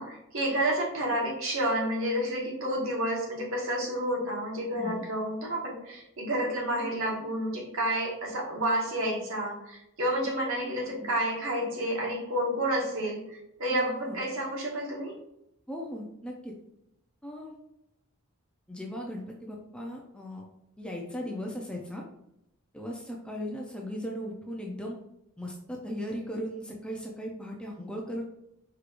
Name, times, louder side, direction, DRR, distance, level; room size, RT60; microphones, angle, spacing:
voice 1, 0.0-15.1, right 1 dB, 65° right, -2 dB, 1.3 m, -30 dB
voice 2, 4.7-5.1 10.6-11.1 13.7-14.2 15.7-16.5 17.2-17.5 18.7-20.4 20.8-22.0 22.7-25.0 25.4-28.2, equal, 5° left, -1 dB, 0.4 m, -37 dB
4.8 x 3.1 x 2.5 m, 0.82 s
head